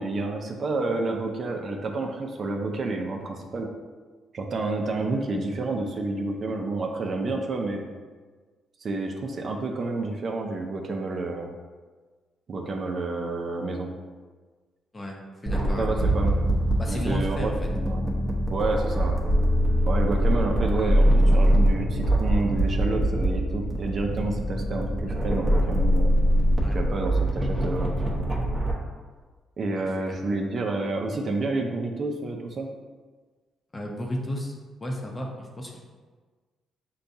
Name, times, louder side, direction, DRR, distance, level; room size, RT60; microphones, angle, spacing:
voice 1, 0.0-3.7 4.3-7.9 8.8-11.5 12.5-13.9 15.6-16.4 16.9-18.1 18.5-19.2 19.9-26.1 26.7-28.5 29.6-32.7, right 3 dB, 45° right, 2 dB, 0.5 m, -29 dB
voice 2, 15.4-16.1 16.8-17.7 26.6-26.8 29.8-29.9 33.7-34.5 34.8-35.7, left 1 dB, 25° left, 0 dB, 0.8 m, -33 dB
sound 1, 15.5-28.7, equal, 10° right, 0.9 m, -23 dB
6.4 x 2.3 x 2.7 m, 1.4 s
cardioid pair, 90°, 0 cm